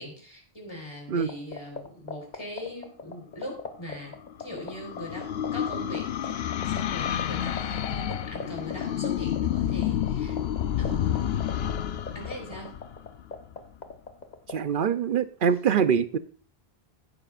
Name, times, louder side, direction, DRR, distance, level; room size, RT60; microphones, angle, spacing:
voice 1, 0.0-4.1 4.4-10.4 10.8-11.4 12.1-12.7, left 1 dB, 25° left, 0 dB, 4.4 m, -41 dB
sound 1, 1.2-14.6, left 5 dB, 45° left, 1.3 m, -36 dB
sound 2, 4.0-13.5, left 10 dB, 75° left, 0.9 m, -30 dB
voice 2, 14.5-16.2, right 7 dB, 60° right, 12 dB, 0.8 m, -24 dB
17.0 x 9.8 x 2.5 m, 0.43 s
omnidirectional pair, 1.0 m